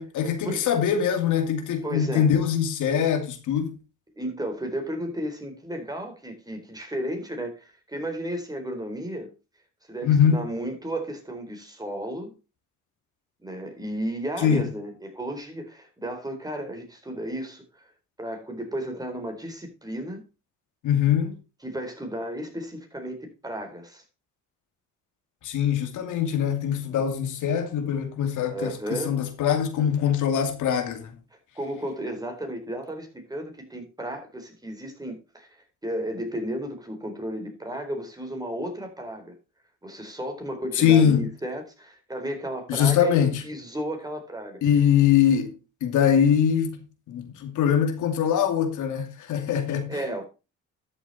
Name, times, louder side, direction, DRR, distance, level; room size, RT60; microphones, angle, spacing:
voice 1, 0.0-3.8 10.0-10.4 14.4-14.6 20.8-21.4 25.4-31.2 40.8-41.3 42.7-43.4 44.6-45.5 45.8-50.0, left 8 dB, 85° left, 2.6 m, -23 dB
voice 2, 1.8-2.3 4.2-9.3 9.9-12.3 13.4-17.6 18.2-20.2 21.6-24.0 28.5-29.1 31.5-39.4 39.8-44.6 49.9-50.3, right 1 dB, 10° right, 4.2 m, -33 dB
13.0 x 7.2 x 4.3 m
cardioid pair, 90°, 30 cm